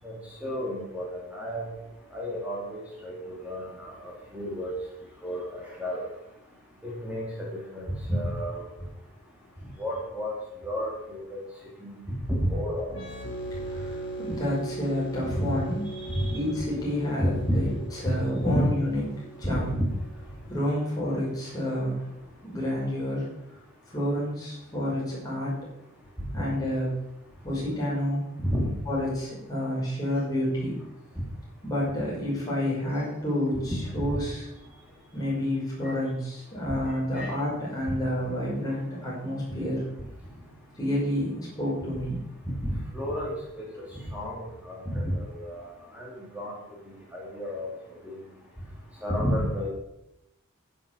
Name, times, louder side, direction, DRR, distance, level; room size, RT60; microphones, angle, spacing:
voice 1, 0.4-1.6 2.1-4.7 5.2-6.0 6.8-7.5 7.7-8.7 9.8-10.3 10.6-11.4 11.8-12.0 12.3-12.9 15.3-15.5 15.9-16.4 17.2-17.6 18.0-18.1 18.4-18.7 19.4-19.9 28.4-28.7 33.7-34.1 35.8-35.9 37.1-37.3 42.5-43.7 44.1-46.5 47.1-47.7 48.0-48.2 49.0-49.7, equal, 5° right, -4 dB, 2.8 m, -31 dB
sound 1, 12.9-20.4, right 2 dB, 55° left, 2.5 m, -39 dB
voice 2, 13.5-15.8 16.3-17.7 18.0-19.7 20.5-22.1 22.4-23.3 23.9-25.6 26.3-26.9 27.4-28.2 28.9-30.8 31.6-34.5 35.1-39.8 40.8-42.2, left 1 dB, 15° left, -6 dB, 5.8 m, -29 dB
10.5 x 8.1 x 7.0 m, 0.87 s
head